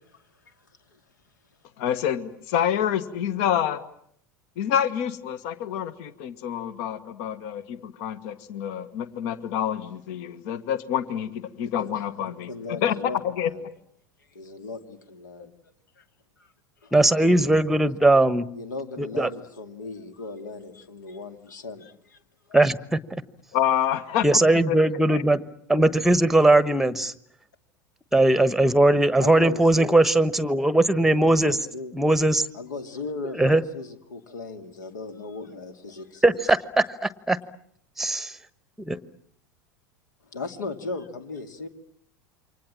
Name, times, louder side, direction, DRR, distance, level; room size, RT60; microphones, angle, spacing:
voice 1, 1.8-3.8 4.6-13.5 23.5-24.2 24.7-24.8 25.1-25.2, left 9 dB, 55° left, 14 dB, 1.5 m, -27 dB
voice 2, 11.6-13.7 14.3-15.5 16.0-16.1 16.4-16.5 16.8-16.9 17.2-17.6 18.6-22.2 22.5-22.6 29.2-30.0 31.3-31.9 32.5-36.4 40.3-41.7, left 3 dB, 70° left, 8 dB, 2.4 m, -37 dB
voice 3, 16.9-18.5 19.0-19.3 22.5-23.0 24.2-25.4 25.7-27.1 28.1-31.6 32.0-32.4 33.4-33.6 36.2-37.4 38.0-38.3 38.9-39.0, right 2 dB, 5° right, 16 dB, 1.2 m, -19 dB
28.5 x 25.0 x 7.5 m, 0.69 s
figure-of-eight pair, 80°, 10 cm